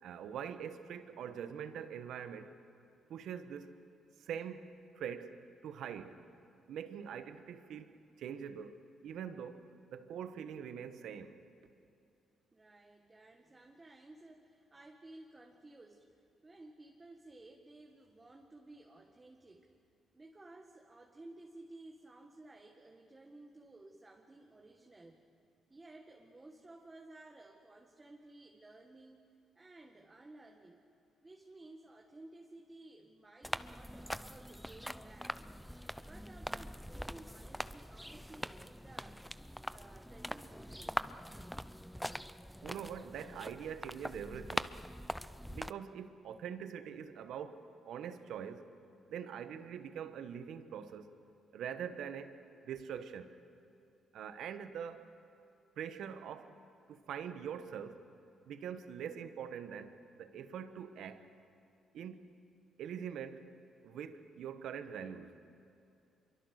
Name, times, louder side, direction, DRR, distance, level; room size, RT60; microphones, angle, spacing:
voice 1, 0.0-2.5 3.1-3.8 4.2-5.4 5.6-6.2 6.7-8.8 9.0-9.6 9.9-11.4 42.6-44.7 45.5-48.7 49.1-51.1 51.5-53.3 54.1-55.1 55.8-56.6 56.9-58.0 58.4-59.9 60.2-61.2 61.9-62.3 62.8-63.5 63.8-65.4, right 8 dB, 75° right, 10 dB, 1.3 m, -43 dB
voice 2, 12.5-16.1 16.4-19.7 20.1-25.2 25.7-29.3 29.6-30.8 31.2-35.4 35.9-39.2 39.7-41.1, right 2 dB, 25° right, 1 dB, 1.9 m, -56 dB
sound 1, 33.4-45.7, equal, ahead, 0.6 m, -43 dB
25.5 x 23.5 x 6.6 m, 2.6 s
supercardioid pair, 70°, 0 cm